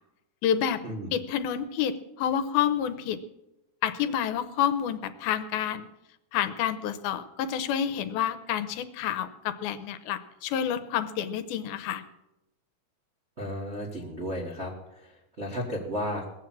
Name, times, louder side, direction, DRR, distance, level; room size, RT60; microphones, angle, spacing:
voice 1, 0.4-0.8 1.1-3.2 3.8-5.9 6.3-12.0, left 9 dB, 85° left, 12 dB, 2.6 m, -29 dB
voice 2, 13.4-14.7 15.0-16.2, equal, 55° right, -3 dB, 0.7 m, -33 dB
19.5 x 7.5 x 7.4 m, 0.94 s
omnidirectional pair, 4.4 m